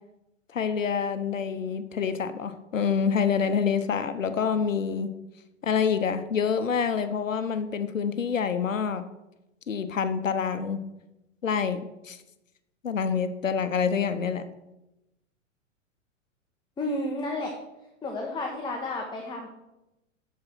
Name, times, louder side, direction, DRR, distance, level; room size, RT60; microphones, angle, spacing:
voice 1, 0.5-5.1 5.6-9.0 9.7-10.8 11.4-12.2 12.8-14.4, left 6 dB, 75° left, 10 dB, 0.9 m, -27 dB
voice 2, 16.8-17.5 18.0-19.5, left 2 dB, 10° left, 1 dB, 1.1 m, -31 dB
13.0 x 4.7 x 6.0 m, 0.95 s
figure-of-eight pair, 100°, 39 cm